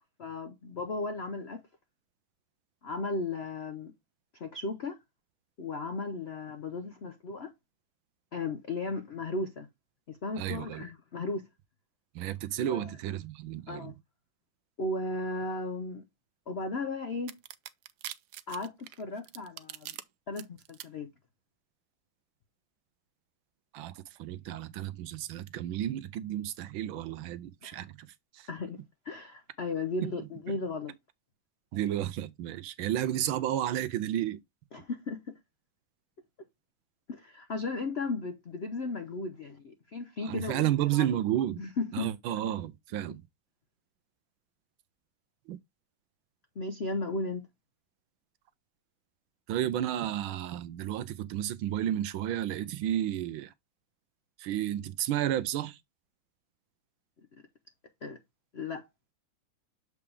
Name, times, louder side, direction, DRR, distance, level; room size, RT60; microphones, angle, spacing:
voice 1, 0.0-1.6 2.8-3.9 4.3-5.0 5.6-7.5 8.3-9.7 10.1-11.4 12.6-12.9 13.7-13.9 14.8-16.0 16.5-17.4 18.5-20.0 20.3-21.1 27.6-27.8 28.5-28.8 29.0-30.9 34.7-35.3 37.1-41.1 41.6-42.1 46.6-47.4 58.0-58.2 58.5-58.9, left 3 dB, 75° left, 0.6 m, -35 dB
voice 2, 10.4-10.8 12.1-13.9 23.7-28.1 28.3-28.5 30.0-30.1 31.7-34.4 40.2-41.6 41.9-43.2 45.5-45.6 49.5-53.5 54.4-55.8, right 12 dB, 90° right, 1.5 m, -32 dB
sound 1, 17.3-20.0 20.4-20.8, right 13 dB, 70° right, 1.0 m, -42 dB
7.0 x 4.7 x 3.3 m
omnidirectional pair, 2.2 m